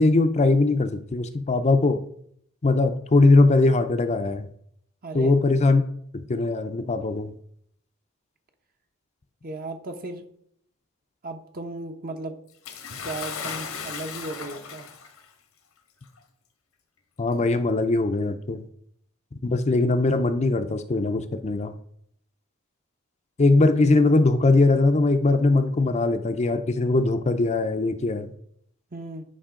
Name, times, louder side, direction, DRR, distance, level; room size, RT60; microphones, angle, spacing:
voice 1, 0.0-2.0 2.6-4.5 5.1-5.8 6.3-7.3 17.2-18.6 19.4-21.7 23.4-28.3, left 2 dB, 30° left, 8 dB, 0.5 m, -21 dB
voice 2, 5.0-5.4 9.4-10.2 11.2-12.4 13.0-14.9 28.9-29.2, right 2 dB, 45° right, 5 dB, 0.9 m, -35 dB
Bathtub (filling or washing) / Splash splatter, 12.6-15.2 16.2-16.3 17.3-17.4, left 6 dB, 90° left, 1.5 m, -36 dB
10.0 x 5.4 x 3.7 m, 0.68 s
head